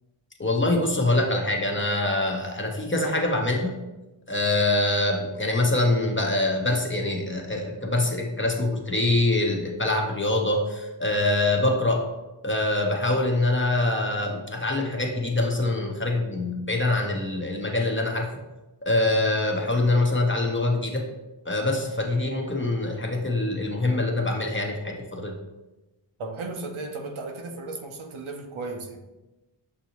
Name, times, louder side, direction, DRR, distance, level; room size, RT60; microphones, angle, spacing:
voice 1, 0.4-3.7 4.3-12.1 12.4-18.3 18.8-21.1 21.4-25.3, left 2 dB, 25° left, 1 dB, 0.8 m, -24 dB
voice 2, 26.2-29.0, right 3 dB, 90° right, 4 dB, 0.7 m, -35 dB
6.2 x 2.7 x 2.9 m, 1.1 s
wide cardioid pair, 40°, 48 cm